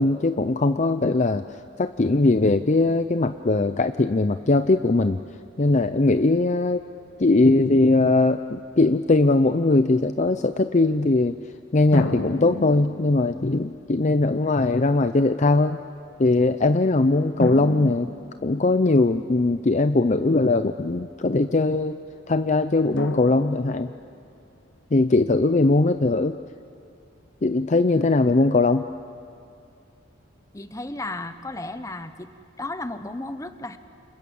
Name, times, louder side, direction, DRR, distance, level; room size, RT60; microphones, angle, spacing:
voice 1, 0.0-1.4 1.8-5.2 5.6-6.8 7.2-11.4 11.7-15.8 16.2-18.1 18.4-22.0 22.3-23.9 24.9-26.4 27.4-28.9, left 2 dB, 40° left, 10 dB, 0.6 m, -20 dB
sound 1, 11.9-13.7 14.6-14.7 17.4-19.1 23.0-24.3, left 1 dB, 70° left, 1.7 m, -32 dB
voice 2, 30.5-32.3 32.6-33.8, left 2 dB, 15° left, 10 dB, 1.1 m, -34 dB
29.5 x 28.0 x 7.2 m, 2.5 s
head